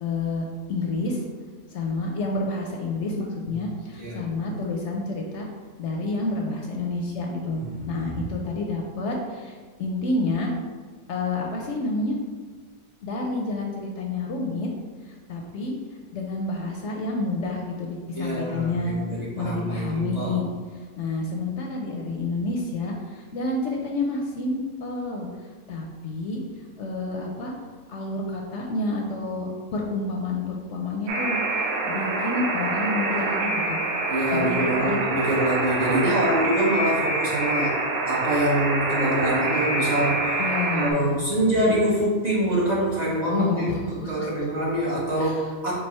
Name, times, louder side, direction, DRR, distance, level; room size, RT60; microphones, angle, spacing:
voice 1, 0.0-1.2 1.7-5.5 5.8-7.6 7.9-10.5 11.1-12.2 13.0-14.7 15.1-15.7 16.1-19.0 19.4-20.5 21.0-25.3 25.7-26.4 26.8-27.5 27.9-31.4 31.8-33.8 34.3-35.0 40.4-41.2 43.3-44.3 45.2-45.5, left 2 dB, 65° left, 0 dB, 0.8 m, -29 dB
voice 2, 7.4-8.0 18.1-20.4 34.1-37.8 38.1-40.3 40.7-45.7, right 1 dB, 35° right, -6 dB, 0.8 m, -25 dB
Alarm, 31.1-40.9, right 2 dB, 65° right, 0.9 m, -26 dB
4.7 x 2.6 x 4.2 m, 1.5 s
omnidirectional pair, 1.5 m